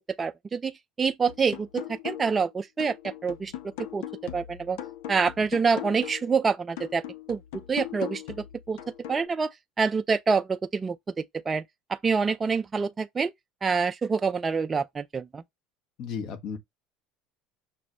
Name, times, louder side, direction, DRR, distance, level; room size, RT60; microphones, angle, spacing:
voice 1, 0.2-3.5 3.9-4.0 4.3-4.8 5.1-7.0 7.3-8.8 9.1-11.6 11.9-13.3 13.6-15.4, right 5 dB, 25° right, 0.3 m, -27 dB
sound 1, 1.3-2.4 2.8-6.3 6.8-9.3, left 12 dB, 75° left, 0.6 m, -39 dB
voice 2, 16.0-16.6, left 6 dB, 60° left, 1.2 m, -34 dB
5.9 x 2.5 x 3.0 m
supercardioid pair, 90°, 0 cm